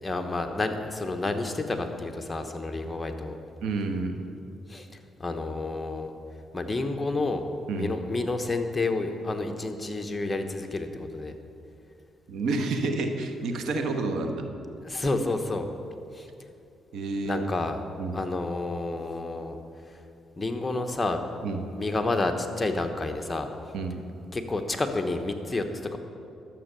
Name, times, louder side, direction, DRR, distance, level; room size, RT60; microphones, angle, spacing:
voice 1, 0.0-3.4 4.7-4.9 5.2-6.1 6.5-7.5 7.7-11.3 14.8-15.7 16.1-16.3 17.2-17.8 18.1-19.6 20.4-21.2 21.8-23.5 24.3-26.0, left 2 dB, 20° left, 5 dB, 1.1 m, -29 dB
voice 2, 3.6-4.3 7.7-8.0 12.3-14.5 16.9-17.5 18.0-18.2 21.4-21.7 23.7-24.0, right 3 dB, 75° right, 5 dB, 1.1 m, -29 dB
12.0 x 7.5 x 6.8 m, 2.6 s
cardioid pair, 90°, 0 cm